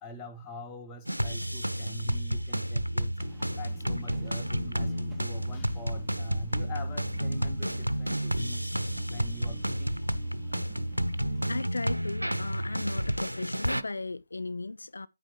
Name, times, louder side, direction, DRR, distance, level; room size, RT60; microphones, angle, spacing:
voice 1, 0.0-3.2 3.6-8.7 9.1-10.0, left 1 dB, 15° left, 1.5 m, -44 dB
sound 1, 1.1-13.8, right 1 dB, 85° right, 0.8 m, -31 dB
sound 2, 2.9-11.5, left 4 dB, 50° left, 1.7 m, -56 dB
sound 3, 3.2-11.6, equal, ahead, 1.7 m, -50 dB
voice 2, 11.5-15.1, left 3 dB, 65° left, 0.4 m, -36 dB
9.9 x 8.7 x 3.0 m
figure-of-eight pair, 145°, 0 cm